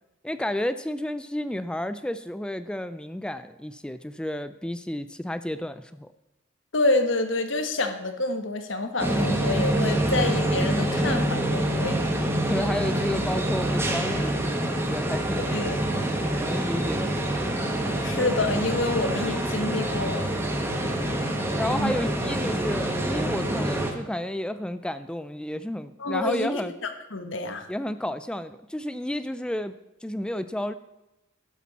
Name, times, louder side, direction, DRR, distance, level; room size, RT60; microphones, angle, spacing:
voice 1, 0.2-6.1 12.5-15.8 16.2-17.2 20.8-21.2 21.6-26.7 27.7-29.7 30.0-30.7, left 1 dB, 5° left, 12 dB, 0.3 m, -31 dB
voice 2, 6.7-12.1 15.5-15.8 18.0-20.3 21.8-21.9 26.0-27.7, left 2 dB, 75° left, 7 dB, 1.3 m, -27 dB
sound 1, 9.0-23.9, right 1 dB, 15° right, 1.3 m, -26 dB
12.0 x 11.0 x 4.1 m, 0.98 s
head